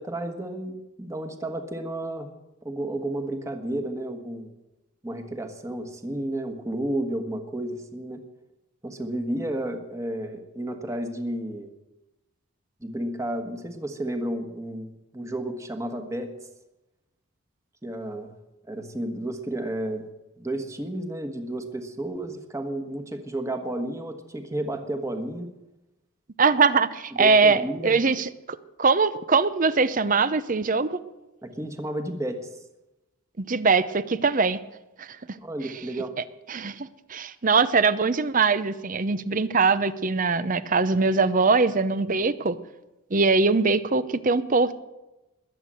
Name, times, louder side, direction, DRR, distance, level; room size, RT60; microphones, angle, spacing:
voice 1, 0.0-2.3 2.6-4.6 5.0-8.2 8.8-11.7 12.8-16.3 17.8-18.3 18.7-20.0 20.4-25.5 27.1-28.0 31.4-32.6 35.4-36.1, right 1 dB, 15° right, 6 dB, 1.4 m, -32 dB
voice 2, 26.4-31.0 33.4-34.6 35.0-35.1 36.5-42.6 43.1-44.8, right 4 dB, 40° right, 15 dB, 0.7 m, -22 dB
21.0 x 8.3 x 7.7 m, 1.0 s
head